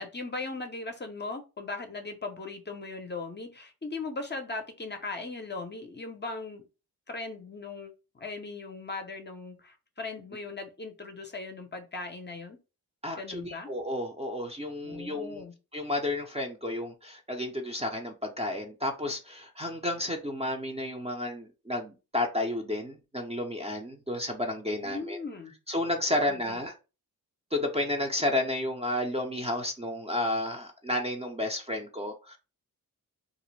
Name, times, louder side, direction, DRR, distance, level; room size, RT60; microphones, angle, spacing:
voice 1, 0.0-6.7 7.1-12.6 13.2-13.7 14.8-15.5 24.8-25.5 26.3-26.6, left 3 dB, 30° left, 0.6 m, -38 dB
voice 2, 13.0-15.4 15.7-25.2 25.7-26.7 27.5-32.4, left 1 dB, 15° right, 0.5 m, -31 dB
2.4 x 2.1 x 3.1 m
cardioid pair, 70°, 38 cm